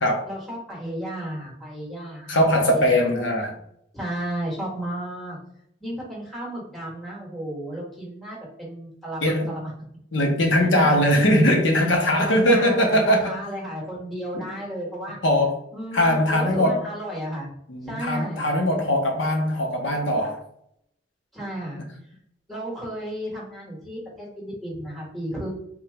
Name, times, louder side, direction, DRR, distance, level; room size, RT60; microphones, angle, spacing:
voice 1, 0.2-3.1 3.9-5.4 5.8-9.7 12.2-15.2 15.7-17.5 17.8-18.5 21.3-21.8 22.5-25.5, right 1 dB, ahead, -5 dB, 1.6 m, -33 dB
voice 2, 2.3-3.5 9.2-9.5 10.1-13.4 14.3-14.4 15.2-15.5 15.9-16.9 17.7-20.4, equal, 90° left, 2 dB, 0.9 m, -20 dB
3.6 x 2.9 x 3.4 m, 0.72 s
head